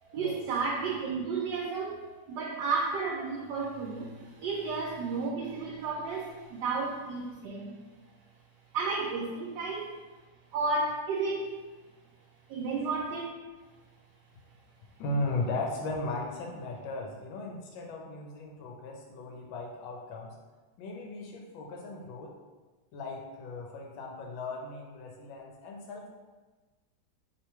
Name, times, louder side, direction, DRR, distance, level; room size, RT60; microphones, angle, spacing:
voice 1, 0.0-7.7 8.7-10.0 10.5-11.6 12.5-13.3, right 4 dB, 75° right, -2 dB, 1.1 m, -32 dB
voice 2, 15.0-20.3 20.8-22.3 22.9-26.1, left 2 dB, 85° left, 0 dB, 1.4 m, -37 dB
3.2 x 2.9 x 4.5 m, 1.3 s
omnidirectional pair, 2.0 m